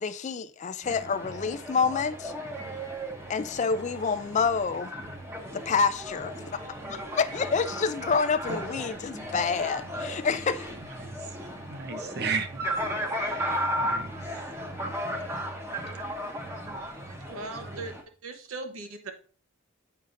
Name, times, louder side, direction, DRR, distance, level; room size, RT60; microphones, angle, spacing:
voice 1, 0.0-2.3 3.3-4.9 5.5-6.6 6.9-10.7, left 5 dB, 35° left, 0.3 m, -28 dB
sound 1, 0.8-18.0, equal, 10° right, 0.7 m, -35 dB
voice 2, 11.7-12.7 13.1-14.1, right 5 dB, 50° right, 0.6 m, -34 dB
voice 3, 17.3-18.0 18.2-19.1, right 3 dB, 80° right, 0.9 m, -38 dB
7.6 x 5.2 x 2.5 m
head